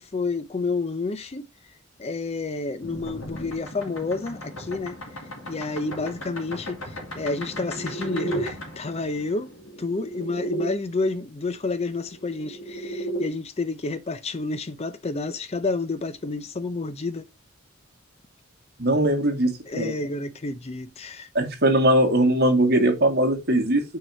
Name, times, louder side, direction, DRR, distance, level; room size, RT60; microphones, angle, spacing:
voice 1, 0.0-1.5 2.0-5.0 5.5-17.2 19.7-21.3, left 3 dB, 30° left, 0.5 m, -30 dB
sound 1, 2.8-10.7 12.0-13.3, right 1 dB, 85° left, 2.6 m, -34 dB
voice 2, 18.8-19.9 21.3-23.8, right 1 dB, 50° right, 2.0 m, -20 dB
6.1 x 4.8 x 4.2 m
head